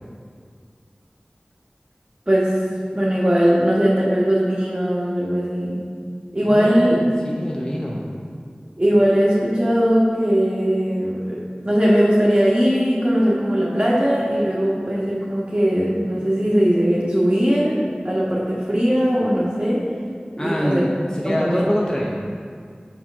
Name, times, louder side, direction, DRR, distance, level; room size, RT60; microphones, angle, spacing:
voice 1, 2.3-2.6 2.9-5.9 6.3-7.0 8.8-19.8 20.4-20.9 21.2-21.7, equal, 35° right, -6 dB, 1.3 m, -19 dB
voice 2, 6.5-8.1 20.4-22.2, equal, 25° left, -3 dB, 0.8 m, -25 dB
6.3 x 4.5 x 6.1 m, 2.1 s
wide cardioid pair, 45°, 3 cm